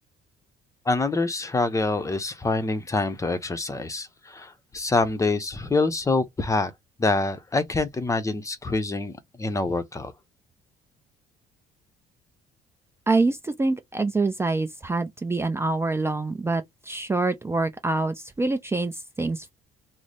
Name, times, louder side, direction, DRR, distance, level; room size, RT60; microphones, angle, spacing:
voice 1, 0.9-6.7 7.0-9.1 9.4-10.1, left 3 dB, 20° left, 0.7 m, -26 dB
voice 2, 13.1-19.5, right 3 dB, 15° right, 0.5 m, -26 dB
3.2 x 2.1 x 3.9 m
cardioid pair, 110°, 17 cm